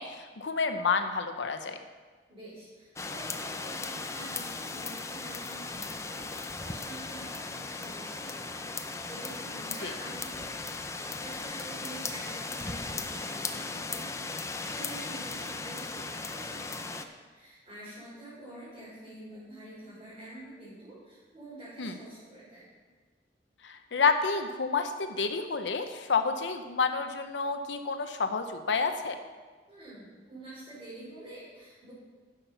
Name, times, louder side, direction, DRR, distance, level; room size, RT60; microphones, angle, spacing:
voice 1, 0.0-1.8 9.8-9.9 21.8-21.9 23.6-29.2, left 5 dB, 90° left, 7 dB, 0.7 m, -29 dB
voice 2, 2.3-17.0 17.3-22.7 29.7-31.9, right 1 dB, 30° right, -11 dB, 4.0 m, -47 dB
sound 1, 3.0-17.0, left 3 dB, 15° left, 0.5 m, -37 dB
11.0 x 7.2 x 5.8 m, 1.4 s
head